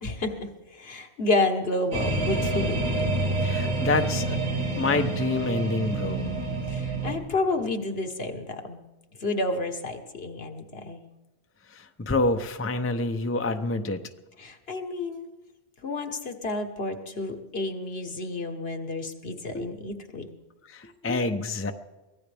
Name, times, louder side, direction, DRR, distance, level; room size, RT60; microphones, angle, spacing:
voice 1, 0.0-2.8 6.7-8.8 9.2-11.0 14.4-15.3 15.8-20.3, left 2 dB, 65° left, 5 dB, 1.5 m, -30 dB
sound 1, 1.9-7.1, right 2 dB, 70° right, 2.7 m, -28 dB
voice 2, 3.4-4.4 4.8-6.3 11.8-14.0 19.5-19.7 20.7-21.7, left 2 dB, 15° left, 6 dB, 0.6 m, -27 dB
23.5 x 16.5 x 3.5 m, 1.1 s
omnidirectional pair, 1.1 m